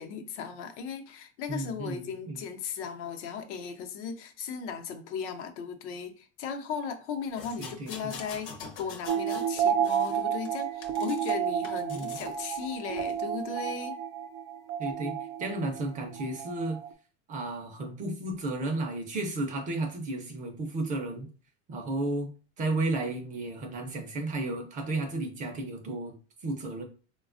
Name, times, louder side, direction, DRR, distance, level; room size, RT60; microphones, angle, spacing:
voice 1, 0.0-8.5 8.8-14.0, left 6 dB, 90° left, 0.7 m, -37 dB
voice 2, 1.5-2.4 7.6-7.9 11.9-12.2 14.8-16.8 17.3-21.3 21.7-22.3 22.6-26.1 26.4-26.8, right 2 dB, 25° right, 0.4 m, -33 dB
sound 1, 7.4-9.5 9.8-11.3 11.6-12.3 13.0-13.1, left 6 dB, 35° left, 0.6 m, -44 dB
sound 2, 9.1-16.9, right 8 dB, 80° right, 0.6 m, -31 dB
4.0 x 2.2 x 2.4 m
supercardioid pair, 155°, 34 cm